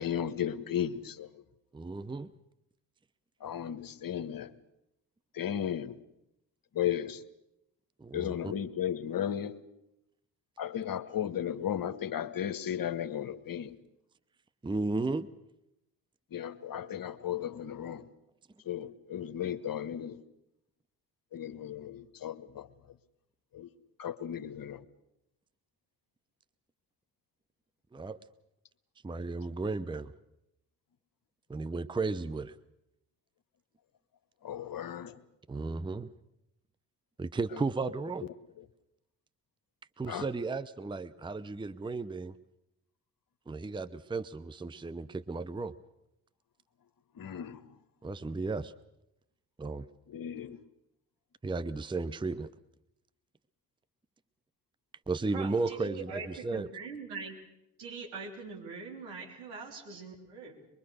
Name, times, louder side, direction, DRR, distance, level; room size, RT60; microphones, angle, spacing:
voice 1, 0.0-1.4 3.4-4.5 5.3-6.0 6.7-7.2 8.1-9.6 10.6-13.7 16.3-18.1 18.6-20.2 21.3-22.7 23.5-23.7 24.0-24.8 34.4-35.2 37.5-37.7 38.6-38.7 40.1-40.3 47.1-47.8 50.1-50.6, left 9 dB, 45° left, 1.3 m, -35 dB
voice 2, 1.7-2.3 8.0-8.5 14.6-15.3 27.9-28.2 29.0-30.1 31.5-32.5 35.5-36.1 37.2-38.3 40.0-42.3 43.5-45.7 48.0-48.7 49.6-49.9 51.4-52.5 55.1-56.7, right 3 dB, 10° right, 0.8 m, -34 dB
voice 3, 55.3-57.4 57.8-60.7, right 4 dB, 75° right, 3.8 m, -42 dB
23.5 x 22.5 x 6.5 m
figure-of-eight pair, 40°, 50 cm